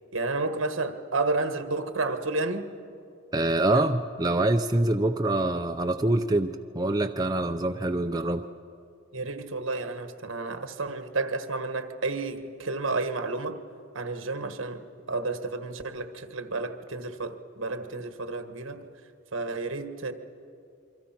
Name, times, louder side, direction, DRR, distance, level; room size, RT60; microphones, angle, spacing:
voice 1, 0.1-2.7 3.3-3.4 3.7-3.8 9.1-13.6 13.9-18.8 19.3-20.1, right 3 dB, 70° right, 8 dB, 1.5 m, -31 dB
voice 2, 3.3-8.5, right 2 dB, 20° right, 4 dB, 0.5 m, -25 dB
27.5 x 24.0 x 5.9 m, 2.5 s
head